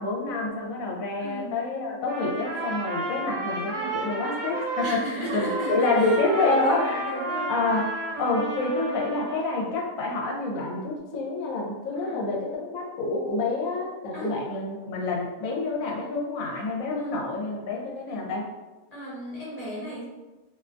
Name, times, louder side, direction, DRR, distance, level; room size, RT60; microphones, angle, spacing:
voice 1, 0.0-5.0 5.3-7.0 7.5-7.9 8.2-18.5, left 3 dB, 75° left, -2 dB, 1.0 m, -28 dB
voice 2, 1.2-1.5 4.8-7.6 8.1-8.3 11.9-12.2 14.1-14.3 17.0-17.2 18.9-20.0, equal, 40° left, -7 dB, 0.6 m, -34 dB
Trumpet, 2.0-5.0 5.3-9.4, right 2 dB, 70° right, 1.0 m, -32 dB
2.5 x 2.2 x 2.4 m, 1.1 s
omnidirectional pair, 1.5 m